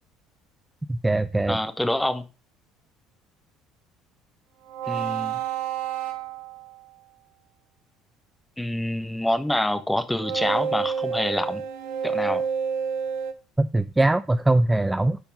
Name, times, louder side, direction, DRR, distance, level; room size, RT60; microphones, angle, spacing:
voice 1, 0.9-1.6 13.6-15.2, right 2 dB, 10° right, 12 dB, 0.5 m, -21 dB
voice 2, 1.5-2.2 4.9-5.4 8.6-11.6 12.0-12.4, left 1 dB, 5° left, 9 dB, 1.1 m, -26 dB
sound 1, 4.7-6.9 10.1-13.3, right 7 dB, 65° right, 1.0 m, -29 dB
10.5 x 4.5 x 5.3 m, 0.31 s
figure-of-eight pair, 60°, 0 cm